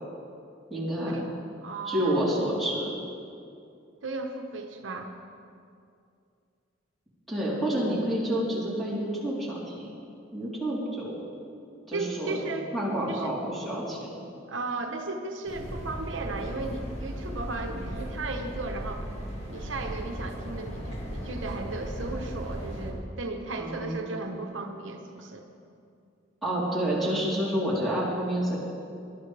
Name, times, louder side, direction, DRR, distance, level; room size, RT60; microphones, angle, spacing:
voice 1, 0.7-1.2 1.9-2.9 7.3-9.9 10.3-11.2 11.9-12.4 12.7-14.2 23.6-24.0 26.4-28.6, right 1 dB, ahead, -8 dB, 3.5 m, -29 dB
voice 2, 1.6-2.2 4.0-5.1 11.9-12.7 13.1-13.3 14.5-19.1 19.5-25.4, right 3 dB, 85° right, 4 dB, 1.0 m, -35 dB
sound 1, 15.4-22.9, equal, 35° left, 2.0 m, -36 dB
19.0 x 12.0 x 3.4 m, 2.4 s
head